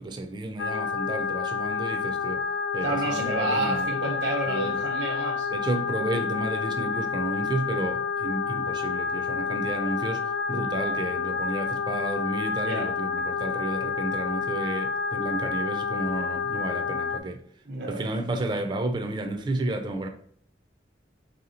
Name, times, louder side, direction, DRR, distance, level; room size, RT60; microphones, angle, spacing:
voice 1, 0.0-2.4 2.7-3.9 4.5-4.8 5.5-17.4 17.8-20.1, right 2 dB, 25° right, 0.4 m, -32 dB
sound 1, 0.6-17.2, left 6 dB, 85° left, 0.4 m, -29 dB
voice 2, 2.8-5.5 12.6-12.9 17.6-18.1, right 2 dB, 80° right, 1.0 m, -30 dB
3.2 x 2.8 x 4.1 m
head